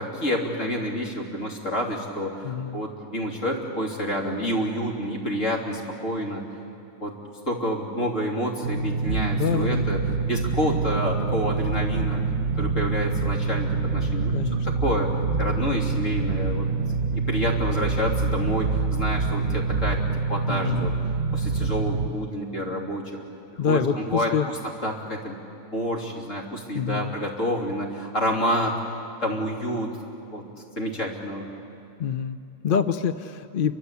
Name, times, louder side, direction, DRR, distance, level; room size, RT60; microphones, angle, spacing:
voice 1, 0.0-6.4 7.0-7.1 7.5-10.0 10.2-12.2 12.6-14.3 14.8-16.7 17.1-20.0 20.3-20.9 21.3-23.2 23.7-24.6 24.8-25.4 25.6-28.7 29.2-29.9 30.3-30.4 30.8-31.5, equal, 65° left, -1 dB, 3.6 m, -28 dB
voice 2, 2.4-2.8 9.4-9.8 14.3-14.7 20.5-20.9 23.6-24.5 26.7-27.2 32.0-33.7, left 7 dB, 50° left, 10 dB, 0.8 m, -26 dB
sound 1, 8.6-22.1, right 4 dB, 40° right, 1.2 m, -26 dB
28.5 x 24.5 x 8.3 m, 2.7 s
omnidirectional pair, 1.4 m